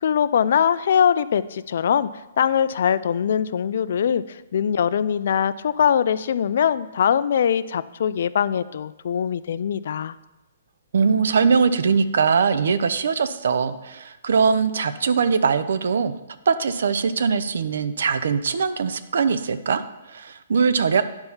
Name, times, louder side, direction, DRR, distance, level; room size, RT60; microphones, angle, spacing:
voice 1, 0.0-2.1 2.4-10.2, left 8 dB, 55° left, 16 dB, 0.3 m, -22 dB
voice 2, 10.9-16.2 16.5-21.0, right 5 dB, 70° right, 12 dB, 0.6 m, -21 dB
9.7 x 4.4 x 5.6 m, 1.0 s
hypercardioid pair, 165°, 0 cm